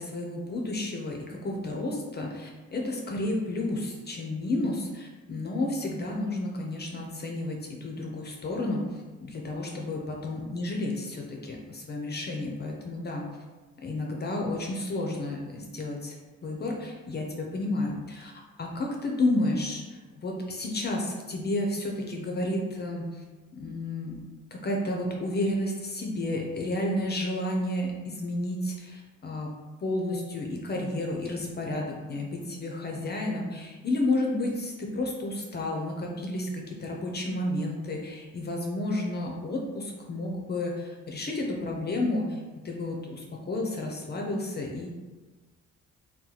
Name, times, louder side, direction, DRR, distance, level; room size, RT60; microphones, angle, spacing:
voice 1, 0.0-8.8 9.2-13.2 13.8-16.2 16.4-18.3 18.6-23.2 23.5-24.1 24.5-29.5 29.8-44.9, left 2 dB, 35° left, 0 dB, 0.5 m, -31 dB
2.8 x 2.2 x 3.8 m, 1.3 s
cardioid pair, 115°, 29 cm